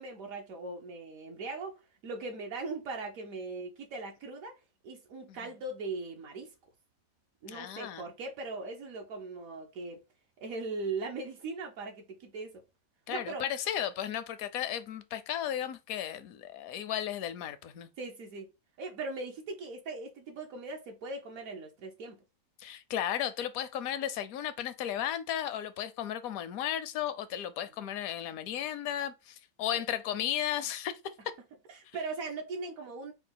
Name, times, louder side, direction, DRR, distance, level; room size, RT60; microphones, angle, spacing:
voice 1, 0.0-4.5 4.8-6.5 7.4-10.0 10.4-12.6 13.1-13.4 18.0-18.5 18.8-22.2 31.7-33.1, right 3 dB, 70° right, 1.1 m, -39 dB
voice 2, 7.5-8.1 13.1-17.9 22.6-30.9, left 10 dB, 75° left, 1.0 m, -34 dB
4.5 x 2.3 x 3.9 m
omnidirectional pair, 1.5 m